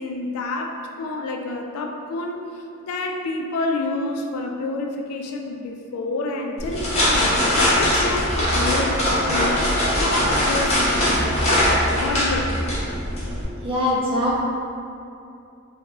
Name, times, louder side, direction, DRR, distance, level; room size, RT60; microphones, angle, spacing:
voice 1, 0.0-9.6 10.0-12.7, left 2 dB, 80° left, 5 dB, 0.3 m, -29 dB
sound 1, 6.6-13.4, left 1 dB, 30° left, 0.6 m, -21 dB
voice 2, 13.6-14.4, left 1 dB, 25° right, -5 dB, 0.4 m, -22 dB
3.2 x 2.0 x 2.8 m, 2.6 s
head